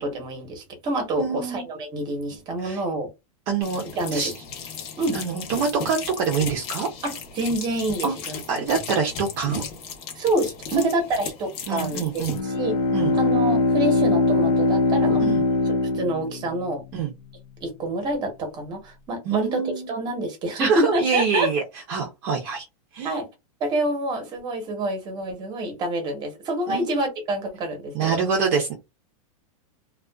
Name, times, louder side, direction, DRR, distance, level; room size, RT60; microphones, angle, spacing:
voice 1, 0.0-3.1 4.0-4.3 5.0-5.2 7.0-8.7 10.1-12.8 13.1-15.2 15.8-16.8 17.6-21.5 23.0-23.3 23.6-28.2, right 1 dB, 20° right, 0.9 m, -27 dB
voice 2, 1.2-1.6 2.6-2.8 3.5-3.8 4.1-4.3 5.1-6.9 8.0-8.1 8.5-9.6 10.7-10.9 11.7-12.4 12.9-13.1 15.2-15.4 16.9-17.1 19.3-19.9 20.6-21.6 21.9-22.6 22.9-23.1 26.7-26.9 27.9-28.7, right 6 dB, 40° right, 0.6 m, -25 dB
sound 1, 3.6-12.4, left 5 dB, 35° left, 0.8 m, -36 dB
Bowed string instrument, 12.3-16.9, left 3 dB, 80° left, 0.7 m, -21 dB
2.4 x 2.3 x 2.2 m
supercardioid pair, 150°, 19 cm